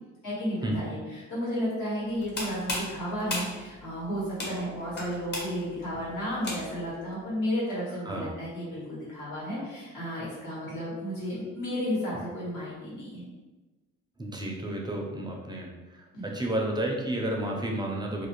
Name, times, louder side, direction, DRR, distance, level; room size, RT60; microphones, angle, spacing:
voice 1, 0.2-13.2 16.1-16.2, equal, 75° left, -7 dB, 1.4 m, -33 dB
sound 1, 2.1-7.0, left 1 dB, 35° left, 0.7 m, -36 dB
voice 2, 14.2-15.7 16.2-18.3, right 1 dB, 15° right, 0 dB, 0.4 m, -31 dB
2.5 x 2.1 x 2.9 m, 1.2 s
cardioid pair, 90°, 30 cm